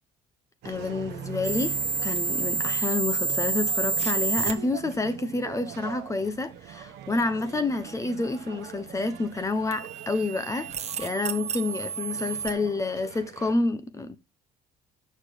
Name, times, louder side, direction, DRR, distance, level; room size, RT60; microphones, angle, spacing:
voice 1, 0.6-1.8 2.0-10.7 11.0-14.2, left 3 dB, 20° left, 0.8 m, -29 dB
sound 1, 0.6-13.5, right 10 dB, 80° right, 1.0 m, -42 dB
sound 2, 1.4-4.5 9.7-12.5, right 5 dB, 40° right, 1.0 m, -29 dB
7.1 x 6.4 x 3.5 m
cardioid pair, 110°, 17 cm